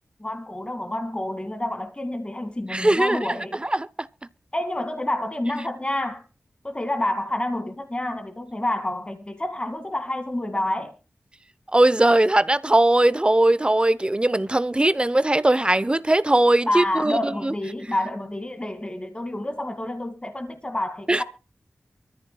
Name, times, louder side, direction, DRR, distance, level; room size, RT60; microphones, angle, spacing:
voice 1, 0.2-3.6 4.5-6.2 6.6-10.9 16.7-21.2, left 1 dB, 25° left, 2.0 m, -28 dB
voice 2, 2.7-3.2 3.6-3.9 11.7-17.5 21.1-21.2, right 1 dB, 20° right, 0.6 m, -19 dB
24.0 x 14.0 x 2.2 m
cardioid pair, 55°, 4 cm